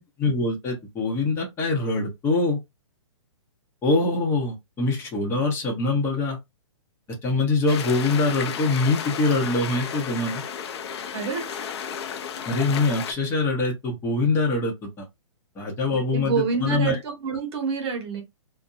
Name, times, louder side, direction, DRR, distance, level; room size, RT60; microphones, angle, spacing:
voice 1, 0.0-2.6 3.8-6.4 7.2-10.4 12.5-15.0 15.6-17.0, left 3 dB, 15° left, 0.8 m, -24 dB
sound 1, 7.7-13.1, left 7 dB, 55° left, 0.5 m, -33 dB
voice 2, 11.1-11.6 15.9-18.2, right 5 dB, 55° right, 1.2 m, -27 dB
2.6 x 2.1 x 2.4 m
hypercardioid pair, 140°, 17 cm